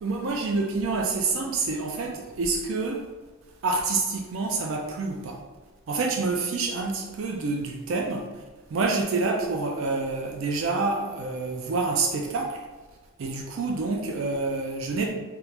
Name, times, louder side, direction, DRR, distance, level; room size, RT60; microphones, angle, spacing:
voice 1, 0.0-3.1 3.6-5.4 5.9-8.3 8.7-12.6 13.2-15.1, right 3 dB, 60° right, 1 dB, 0.3 m, -27 dB
2.9 x 2.4 x 3.4 m, 1.3 s
head